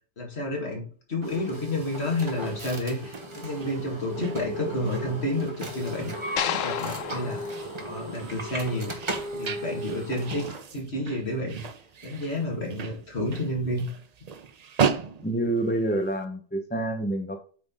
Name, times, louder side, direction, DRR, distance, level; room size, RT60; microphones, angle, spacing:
voice 1, 0.2-6.1 6.5-7.4 7.8-8.9 9.4-10.5 10.7-11.6 12.0-13.8, left 1 dB, 50° left, -1 dB, 2.5 m, -30 dB
sound 1, 1.2-10.6, right 1 dB, 25° right, 1.1 m, -36 dB
sound 2, 1.8-16.2, right 7 dB, 55° right, 0.4 m, -36 dB
sound 3, 6.4-8.7, left 9 dB, 75° left, 1.0 m, -32 dB
voice 2, 15.2-17.4, right 1 dB, 10° left, 4 dB, 0.7 m, -27 dB
8.5 x 4.0 x 3.8 m, 0.41 s
omnidirectional pair, 1.4 m